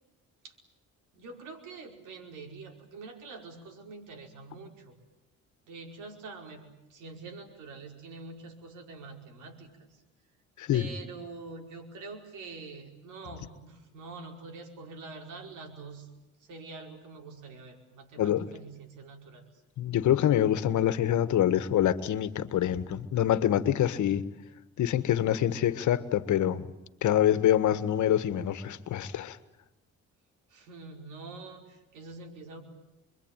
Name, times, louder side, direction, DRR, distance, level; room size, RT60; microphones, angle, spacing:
voice 1, 1.1-5.0 5.7-10.0 10.7-16.1 16.4-19.6 30.5-32.6, right 3 dB, 85° right, 3 dB, 5.2 m, -45 dB
voice 2, 19.8-24.3 24.8-26.7 27.0-29.4, left 11 dB, 75° left, 13 dB, 1.6 m, -25 dB
27.0 x 23.0 x 9.2 m, 0.94 s
cardioid pair, 90°, 30 cm